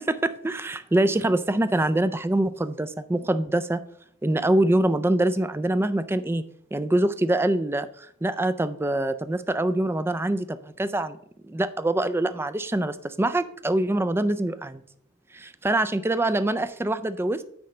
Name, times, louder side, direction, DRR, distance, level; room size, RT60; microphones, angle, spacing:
voice 1, 0.0-3.8 4.2-6.4 6.7-11.2 11.4-14.8 15.3-17.4, right 1 dB, 10° right, 12 dB, 0.3 m, -24 dB
9.5 x 3.2 x 6.7 m, 0.66 s
head